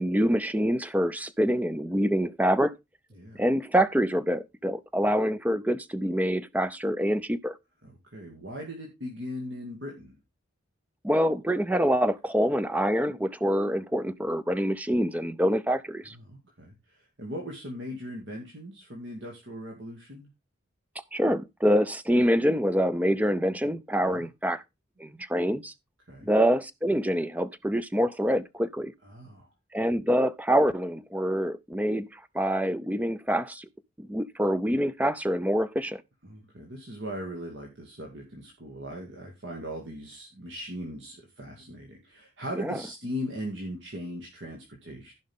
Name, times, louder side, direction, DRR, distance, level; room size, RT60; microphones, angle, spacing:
voice 1, 0.0-2.7 3.4-7.5 11.0-16.1 21.1-24.6 25.0-25.7 26.2-28.9 29.7-32.1 32.3-33.7 34.0-36.0 42.5-42.8, equal, 5° right, 0.4 m, -26 dB
voice 2, 3.1-3.4 7.8-10.2 16.1-20.3 24.0-24.3 26.1-26.3 29.0-29.5 36.2-45.1, equal, 60° right, 2.0 m, -39 dB
15.0 x 5.3 x 3.6 m
head